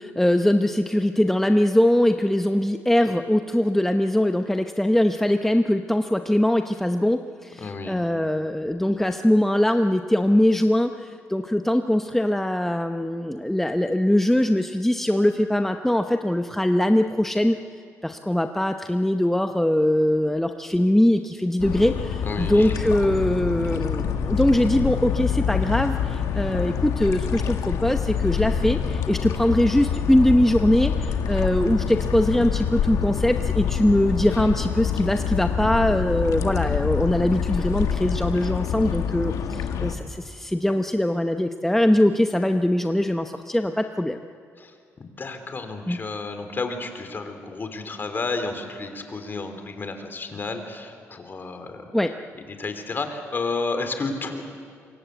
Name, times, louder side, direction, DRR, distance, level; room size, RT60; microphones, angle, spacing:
voice 1, 0.0-17.6 18.0-44.2 45.9-46.0 51.9-52.1, left 1 dB, 5° left, 6 dB, 0.9 m, -22 dB
voice 2, 7.5-8.0 22.2-22.8 44.6-51.9 52.6-54.4, left 3 dB, 40° left, 7 dB, 3.3 m, -31 dB
sound 1, 21.6-40.0, left 7 dB, 85° left, 1.8 m, -26 dB
26.0 x 23.0 x 8.2 m, 2.3 s
cardioid pair, 95°, 6 cm